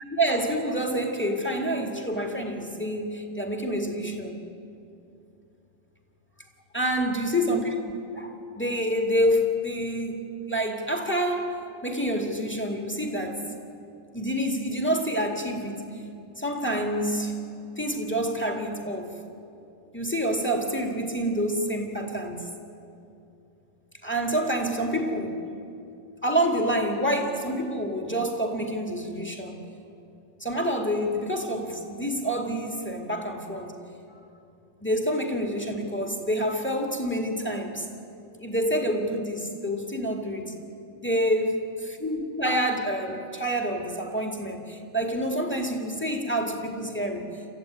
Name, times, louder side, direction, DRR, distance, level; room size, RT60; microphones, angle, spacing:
voice 1, 0.1-4.4 6.7-7.7 8.1-13.4 14.1-16.0 16.4-17.3 17.8-19.2 19.9-22.5 24.0-25.4 26.2-29.6 30.4-33.7 34.8-37.9 38.4-40.5 41.0-41.5 42.0-47.4, equal, 5° left, 3 dB, 2.0 m, -27 dB
28.0 x 14.0 x 9.3 m, 2.7 s
omnidirectional pair, 2.0 m